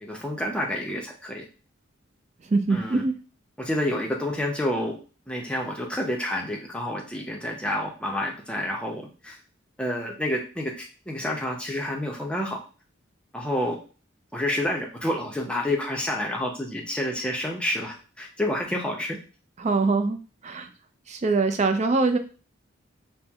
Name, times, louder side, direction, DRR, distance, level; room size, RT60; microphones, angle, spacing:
voice 1, 0.0-1.4 2.7-3.0 3.6-5.0 5.3-9.4 9.8-12.6 13.3-13.8 14.3-19.2, left 1 dB, 5° left, 0 dB, 0.6 m, -29 dB
voice 2, 2.5-3.2 19.6-20.7 21.1-22.2, right 3 dB, 35° right, 7 dB, 0.4 m, -23 dB
4.3 x 2.1 x 3.5 m, 0.36 s
head